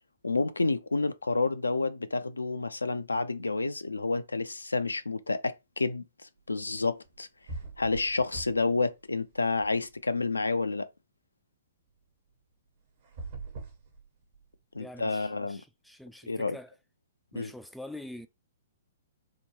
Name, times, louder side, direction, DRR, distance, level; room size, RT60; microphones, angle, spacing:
voice 1, 0.2-6.0 6.5-7.3 7.8-10.9 14.7-15.6 16.3-16.6 17.3-17.5, left 3 dB, 80° left, 0.4 m, -29 dB
sound 1, 7.1-7.2 7.5-8.8 9.1-10.2 13.0-14.6, right 3 dB, 45° right, 1.0 m, -42 dB
voice 2, 14.8-16.8 17.3-18.3, left 1 dB, ahead, 0.3 m, -45 dB
3.6 x 2.1 x 3.0 m
figure-of-eight pair, 115°, 0 cm